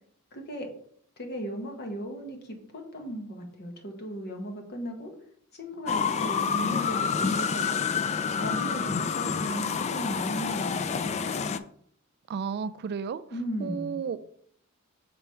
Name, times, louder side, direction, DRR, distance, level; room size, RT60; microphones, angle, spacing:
voice 1, 0.3-0.7 1.2-5.1 5.5-7.8 8.4-11.3 13.3-14.0, equal, 50° left, 1.3 m, -36 dB
sound 1, 5.9-11.6, left 6 dB, 30° left, 0.3 m, -28 dB
voice 2, 12.3-13.2 13.6-14.2, right 6 dB, 50° right, 0.3 m, -32 dB
6.0 x 3.4 x 5.6 m
head